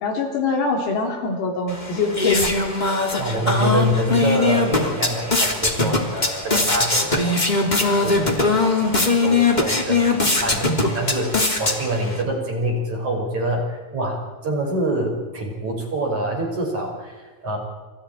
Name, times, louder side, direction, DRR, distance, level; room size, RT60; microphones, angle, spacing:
voice 1, 0.0-2.5, left 4 dB, 80° left, 2 dB, 6.5 m, -23 dB
sound 1, 1.7-12.2, left 3 dB, 15° left, 1.5 m, -21 dB
voice 2, 3.2-17.6, right 1 dB, 35° right, 1 dB, 6.7 m, -26 dB
28.5 x 28.0 x 4.6 m, 1.4 s
omnidirectional pair, 6.0 m